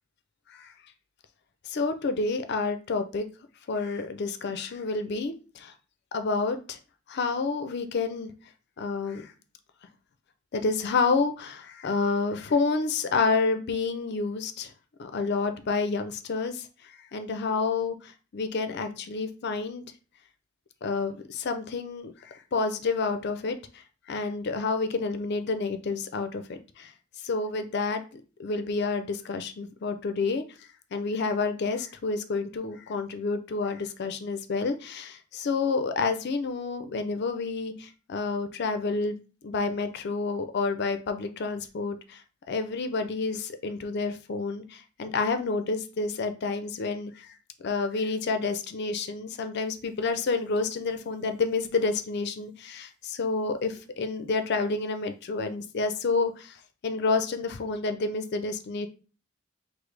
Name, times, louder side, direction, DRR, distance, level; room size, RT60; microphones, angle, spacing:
voice 1, 1.7-3.3 3.7-5.7 6.1-6.8 7.1-8.3 8.8-9.3 10.5-14.7 15.0-19.8 20.8-26.9 27.2-39.2 39.4-42.2 42.5-47.3 47.6-56.6 56.8-58.9, left 4 dB, 55° left, 8 dB, 0.4 m, -29 dB
4.9 x 2.0 x 3.2 m, 0.35 s
head